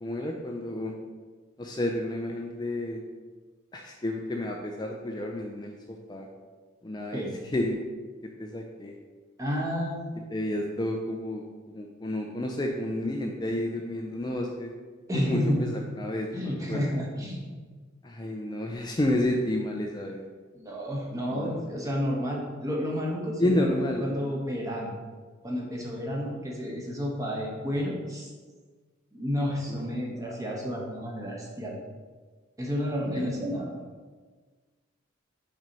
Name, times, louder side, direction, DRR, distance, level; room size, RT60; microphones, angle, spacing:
voice 1, 0.0-0.9 1.6-3.0 3.7-6.3 6.8-7.2 7.5-7.8 8.4-8.9 10.3-14.7 15.1-16.9 18.0-20.2 21.3-21.6 23.4-24.3 29.7-29.8 30.2-30.4 33.1-33.4, left 1 dB, 20° left, 1 dB, 0.5 m, -30 dB
voice 2, 9.4-10.1 15.1-15.7 16.3-17.5 20.5-23.7 24.0-24.9 25.4-28.3 29.1-31.7 32.6-33.7, equal, 15° right, -2 dB, 1.3 m, -31 dB
6.1 x 4.3 x 5.3 m, 1.4 s
head